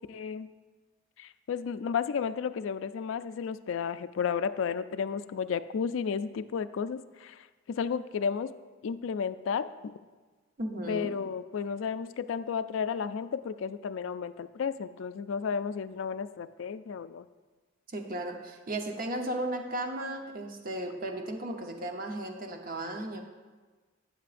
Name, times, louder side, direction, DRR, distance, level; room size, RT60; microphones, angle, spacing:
voice 1, 0.1-0.5 1.2-8.5 8.8-9.9 10.9-17.3, left 6 dB, 75° left, 13 dB, 0.4 m, -33 dB
voice 2, 10.6-11.1 17.9-23.2, right 1 dB, 50° right, 3 dB, 0.9 m, -35 dB
12.5 x 8.2 x 2.5 m, 1.3 s
head